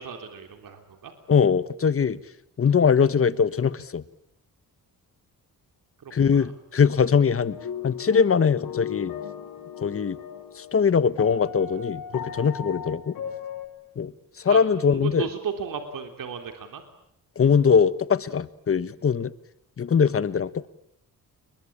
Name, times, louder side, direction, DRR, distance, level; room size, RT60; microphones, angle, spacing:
voice 1, 0.0-1.1 6.0-6.5 14.5-16.8, right 6 dB, 70° right, 6 dB, 3.4 m, -35 dB
voice 2, 1.3-2.2 2.6-4.0 6.1-7.6 7.8-9.1 9.8-10.2 10.5-13.2 14.0-14.1 14.4-15.3 17.4-19.3 19.8-20.7, left 6 dB, 40° left, 15 dB, 1.3 m, -21 dB
sound 1, 7.4-10.8 11.2-13.7, left 8 dB, 90° left, 5.9 m, -36 dB
29.5 x 22.0 x 8.7 m, 0.73 s
cardioid pair, 115°, 34 cm